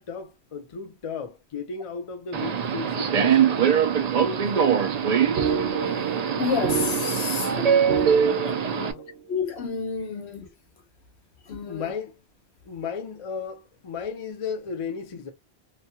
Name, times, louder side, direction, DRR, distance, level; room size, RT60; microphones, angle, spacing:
voice 1, 0.0-3.7 8.7-9.1 10.1-10.2 11.6-12.2 12.7-15.3, left 6 dB, 40° left, 0.5 m, -35 dB
Subway metro underground, 2.3-8.9, right 7 dB, 55° right, 0.4 m, -23 dB
sound 1, 4.8-9.1, right 6 dB, 80° right, 0.9 m, -30 dB
voice 2, 6.4-7.5 9.3-10.5 11.5-11.9, left 6 dB, 80° left, 1.1 m, -29 dB
3.0 x 2.2 x 2.7 m
omnidirectional pair, 1.1 m